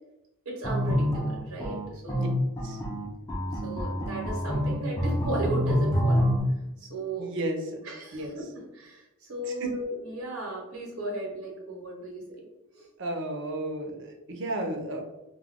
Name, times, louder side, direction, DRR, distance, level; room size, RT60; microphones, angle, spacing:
voice 1, 0.5-2.3 3.6-6.3 6.8-7.3 7.8-8.3 8.7-12.2 12.7-12.9, right 2 dB, 90° right, -2 dB, 0.9 m, -35 dB
sound 1, 0.6-6.4, equal, 15° left, 0.4 m, -27 dB
voice 2, 7.2-7.8 8.1-8.4 9.4-9.7 13.0-15.0, right 1 dB, 55° right, 2 dB, 0.5 m, -33 dB
2.2 x 2.1 x 3.5 m, 0.94 s
head